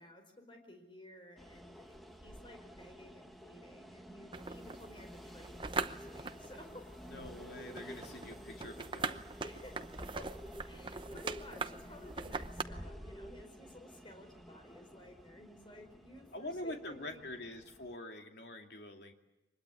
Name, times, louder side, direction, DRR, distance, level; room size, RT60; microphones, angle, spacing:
voice 1, 0.0-7.1 7.7-8.1 9.4-17.2, left 1 dB, 30° left, 4 dB, 4.8 m, -54 dB
sound 1, 1.4-18.0, equal, ahead, 1.2 m, -51 dB
sound 2, 4.3-12.6, right 4 dB, 30° right, 0.8 m, -42 dB
voice 2, 7.1-9.3 16.3-19.1, left 1 dB, 75° left, 3 dB, 2.6 m, -45 dB
24.5 x 21.0 x 8.5 m, 1.0 s
head